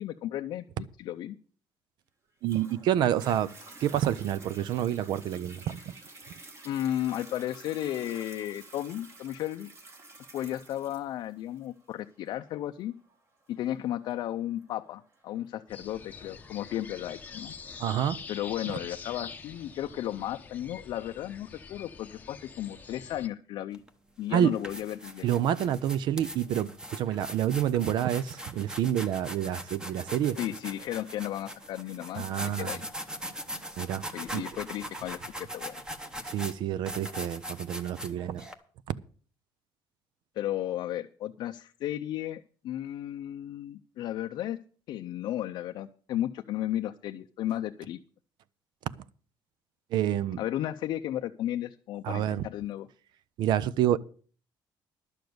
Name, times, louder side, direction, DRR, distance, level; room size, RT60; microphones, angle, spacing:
voice 1, 0.0-1.4 6.6-9.7 10.3-12.9 13.5-17.5 18.3-23.8 24.2-25.3 30.4-32.9 34.1-35.8 40.4-44.6 44.9-48.0 50.4-52.9, left 12 dB, 60° left, 0.5 m, -34 dB
Toilet flush, 2.4-15.5 16.1-16.2, right 2 dB, 30° right, 1.9 m, -50 dB
voice 2, 2.4-3.5 3.8-5.8 17.8-18.2 18.7-18.8 24.3-24.5 25.2-30.4 32.2-32.8 33.8-34.1 34.3-34.4 36.3-38.4 49.9-50.4 52.0-52.4 53.4-54.0, right 11 dB, 60° right, 0.6 m, -28 dB
sound 1, 15.7-23.3, left 5 dB, 20° left, 0.8 m, -45 dB
sound 2, 23.7-23.9 24.4-38.5, equal, 10° right, 1.0 m, -41 dB
11.5 x 6.9 x 7.8 m
cardioid pair, 175°, 9 cm